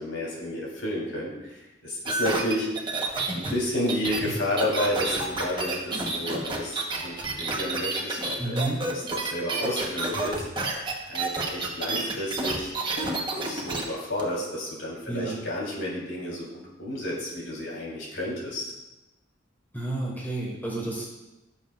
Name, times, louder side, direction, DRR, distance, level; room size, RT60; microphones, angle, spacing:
voice 1, 0.0-2.8 3.3-10.4 11.1-18.7, left 1 dB, 80° left, -4 dB, 3.8 m, -31 dB
sound 1, 2.1-13.8 14.2-14.3, right 3 dB, 25° right, 1.2 m, -29 dB
voice 2, 8.4-8.8 15.1-15.4 19.7-21.2, right 2 dB, 10° left, -5 dB, 2.5 m, -30 dB
16.5 x 7.1 x 2.5 m, 1.0 s
head